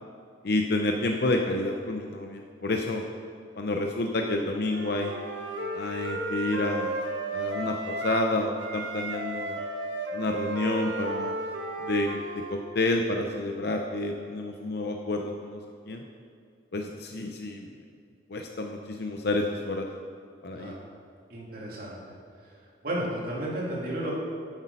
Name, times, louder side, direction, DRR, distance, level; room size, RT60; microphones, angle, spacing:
voice 1, 0.4-3.0 3.6-5.1 5.7-7.0 7.3-9.6 10.1-11.3 11.8-15.6 15.9-16.0 16.7-17.7 18.3-19.9 20.4-20.7, left 2 dB, 55° left, 3 dB, 0.7 m, -29 dB
Wind instrument woodwind instrument, 4.6-8.3 8.6-12.6, right 2 dB, 80° right, 1.3 m, -34 dB
voice 2, 21.3-22.0 22.8-24.2, right 1 dB, 50° right, -5 dB, 2.7 m, -32 dB
10.5 x 8.1 x 5.5 m, 2.3 s
head